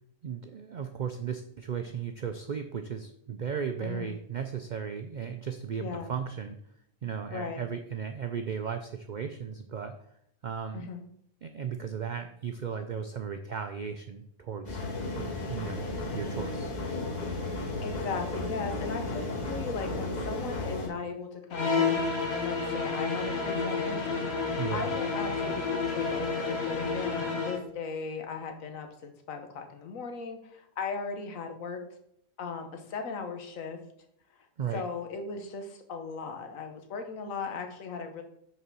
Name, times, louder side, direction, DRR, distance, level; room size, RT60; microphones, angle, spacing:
voice 1, 0.2-6.6 7.0-9.9 10.4-10.9 11.4-14.8 15.2-15.8 16.1-16.7 24.6-24.9 34.6-34.8, right 7 dB, 70° right, 6 dB, 0.4 m, -36 dB
voice 2, 3.8-4.1 5.8-6.1 7.3-7.6 10.7-11.0 17.8-24.2 24.7-31.8 32.4-33.8 34.7-38.2, left 5 dB, 85° left, 5 dB, 1.4 m, -37 dB
sound 1, 14.6-20.9, left 2 dB, 35° left, 1.6 m, -34 dB
sound 2, 21.5-27.7, left 4 dB, 55° left, 1.1 m, -30 dB
5.6 x 4.2 x 6.1 m, 0.72 s
omnidirectional pair, 1.4 m